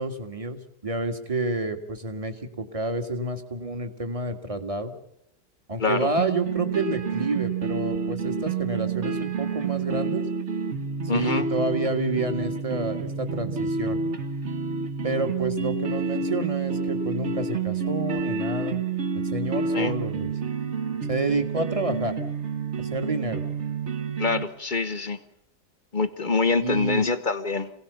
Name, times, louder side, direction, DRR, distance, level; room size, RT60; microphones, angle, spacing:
voice 1, 0.0-4.9 5.7-10.2 11.1-14.0 15.0-18.8 19.2-20.3 21.1-22.2 22.8-23.4 26.6-27.1, right 2 dB, 20° right, 7 dB, 1.8 m, -29 dB
voice 2, 5.8-6.1 11.1-11.5 19.7-19.9 24.2-25.2 25.9-27.7, left 4 dB, 40° left, 11 dB, 0.8 m, -25 dB
sound 1, 6.2-24.4, right 5 dB, 40° right, 1.6 m, -29 dB
26.5 x 18.0 x 6.9 m, 0.77 s
omnidirectional pair, 1.9 m